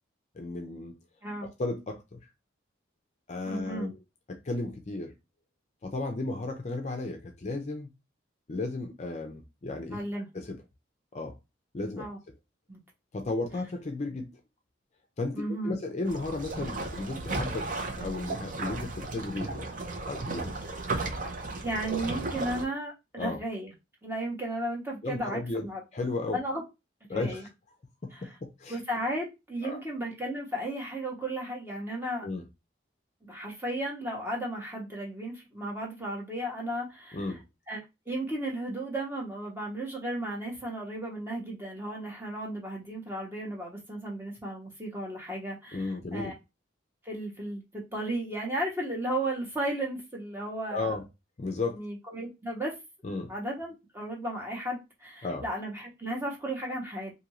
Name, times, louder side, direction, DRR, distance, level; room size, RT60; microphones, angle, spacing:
voice 1, 0.4-1.0 1.4-2.2 3.3-4.0 4.3-5.1 5.8-7.9 8.5-10.0 10.3-10.6 11.1-11.4 11.7-12.1 13.1-14.4 15.2-19.7 20.1-20.7 23.2-23.4 25.0-26.4 27.1-27.4 28.4-28.8 29.6-29.8 32.2-32.4 37.1-37.4 45.7-46.3 50.7-51.0 51.4-51.8 53.0-53.3 55.2-55.4, left 2 dB, 35° left, 0.4 m, -34 dB
voice 2, 3.5-3.9 9.9-10.3 12.0-12.2 12.7-12.8 15.3-15.8 21.6-23.7 24.0-25.8 26.3-26.6 27.1-27.5 28.1-28.3 28.7-32.3 33.2-37.3 37.7-37.8 38.1-46.3 47.0-50.9 51.8-52.7 53.3-57.1, right 1 dB, 10° right, 0.9 m, -34 dB
sound 1, 16.0-22.6, right 3 dB, 45° right, 0.5 m, -35 dB
2.7 x 2.6 x 2.9 m
head